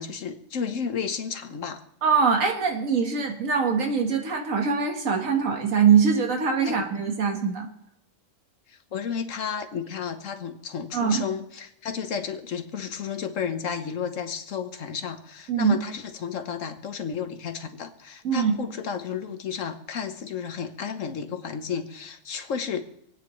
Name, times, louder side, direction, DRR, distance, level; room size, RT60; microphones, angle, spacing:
voice 1, 0.0-1.8 6.6-6.8 8.7-22.8, left 7 dB, 75° left, 7 dB, 1.4 m, -32 dB
voice 2, 2.0-7.7 10.9-11.2 15.5-15.8 18.2-18.6, right 6 dB, 90° right, 2 dB, 1.9 m, -23 dB
27.5 x 9.3 x 3.1 m, 0.79 s
omnidirectional pair, 1.3 m